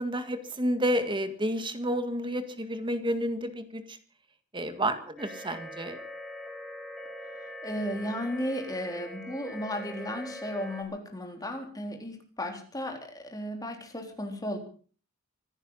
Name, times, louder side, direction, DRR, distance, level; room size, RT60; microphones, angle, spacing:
voice 1, 0.0-3.8 4.5-6.0, equal, 25° right, 9 dB, 1.9 m, -30 dB
sound 1, 5.2-10.8, equal, ahead, 3.5 m, -42 dB
voice 2, 7.6-14.6, left 1 dB, 20° left, 3 dB, 3.7 m, -35 dB
25.5 x 10.0 x 5.6 m, 0.43 s
head